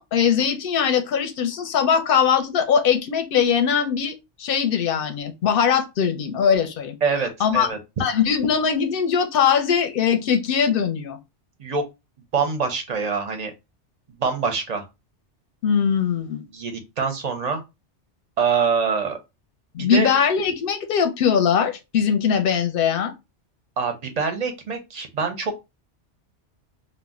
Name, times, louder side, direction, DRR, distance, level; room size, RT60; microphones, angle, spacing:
voice 1, 0.0-4.1 4.4-6.9 7.4-7.7 8.0-11.2 15.6-16.4 19.7-23.1, left 7 dB, 55° left, 0.7 m, -21 dB
voice 2, 7.0-7.8 11.6-11.8 12.3-13.5 14.2-14.8 16.5-17.6 18.4-19.2 19.8-20.1 23.8-25.5, right 5 dB, 50° right, 0.5 m, -24 dB
2.4 x 2.1 x 3.5 m
omnidirectional pair, 1.2 m